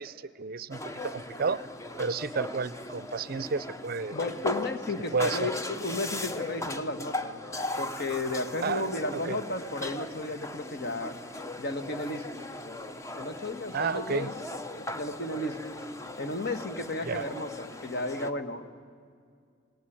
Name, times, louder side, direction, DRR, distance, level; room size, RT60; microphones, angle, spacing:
voice 1, 0.0-1.6 2.0-4.2 5.1-5.5 8.6-8.8 9.1-9.4 13.7-14.3 17.1-17.3, right 4 dB, 45° right, 18 dB, 0.5 m, -31 dB
sound 1, 0.7-18.3, left 2 dB, 15° left, 0.7 m, -38 dB
voice 2, 4.1-7.4 7.8-11.1 11.6-12.2 13.1-14.3 14.8-15.6 16.2-18.8, left 2 dB, 50° left, 9 dB, 1.3 m, -33 dB
18.5 x 17.5 x 9.9 m, 2.2 s
head